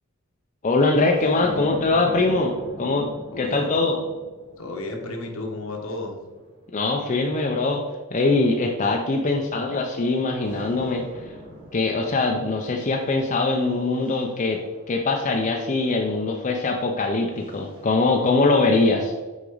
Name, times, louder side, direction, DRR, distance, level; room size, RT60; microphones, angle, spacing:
voice 1, 0.6-3.1 3.4-4.0 6.7-7.8 8.1-11.3 11.7-14.6 14.9-19.1, left 3 dB, 35° left, 1 dB, 0.5 m, -22 dB
sound 1, 0.9-7.4 8.2-10.1 10.4-15.7 16.7-17.9, left 1 dB, 25° right, 1.2 m, -42 dB
voice 2, 3.3-3.7 4.6-6.2, left 2 dB, 65° left, 1 dB, 1.3 m, -32 dB
6.1 x 4.8 x 3.9 m, 1.3 s
head